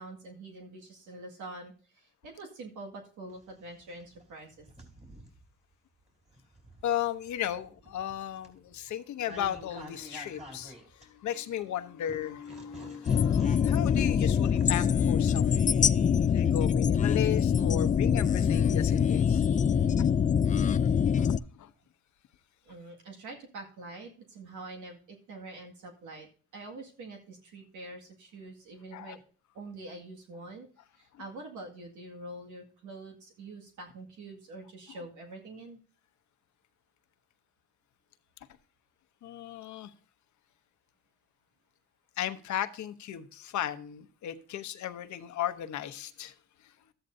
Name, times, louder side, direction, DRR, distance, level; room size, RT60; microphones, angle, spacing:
voice 1, 0.0-4.7 19.8-19.9 22.6-29.2 29.5-30.7 30.9-35.8, right 2 dB, 80° right, 2.0 m, -45 dB
sound 1, 3.3-5.5 6.1-11.6 12.1-15.4, equal, 20° right, 3.5 m, -50 dB
voice 2, 6.8-15.6 16.3-19.4 20.0-20.1 21.2-21.3 21.6-21.7 28.9-29.2 39.2-39.9 42.2-46.3 46.6-46.7, left 10 dB, 70° left, 0.9 m, -35 dB
sound 2, 13.1-21.4, left 7 dB, 25° left, 0.3 m, -24 dB
13.5 x 8.9 x 2.7 m
cardioid pair, 90°, 30 cm